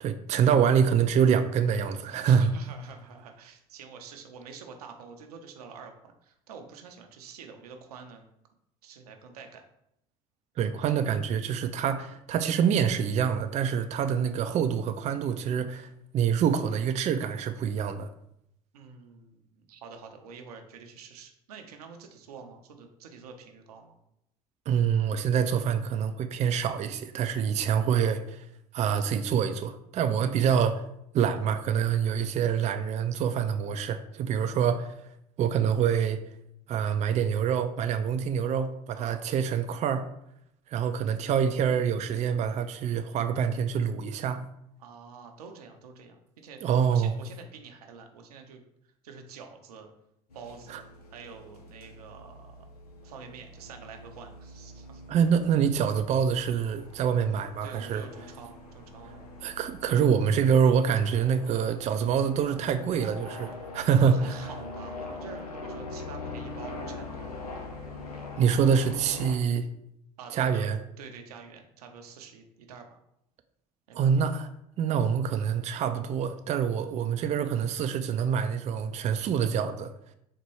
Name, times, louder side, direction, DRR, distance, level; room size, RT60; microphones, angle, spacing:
voice 1, 0.0-2.5 10.6-15.9 16.1-18.1 24.7-28.4 28.7-30.8 31.1-34.9 35.4-36.2 36.7-40.0 40.7-44.4 46.6-47.1 50.7-50.8 55.1-58.0 59.4-64.4 68.4-69.7 70.3-70.8 73.9-74.5 74.8-79.9, right 7 dB, 35° right, 8 dB, 0.4 m, -26 dB
voice 2, 2.2-8.3 8.8-9.6 18.7-24.0 30.2-30.4 38.9-39.2 44.8-49.9 50.3-50.8 51.1-52.7 53.0-55.0 57.6-59.3 63.9-67.3 70.2-70.7 71.0-73.0 73.9-74.1 74.4-74.5, right 5 dB, 85° right, 4 dB, 0.6 m, -47 dB
sound 1, 50.3-69.4, left 2 dB, 90° left, 0.6 m, -43 dB
4.1 x 2.2 x 4.6 m, 0.77 s
hypercardioid pair, 70°, 19 cm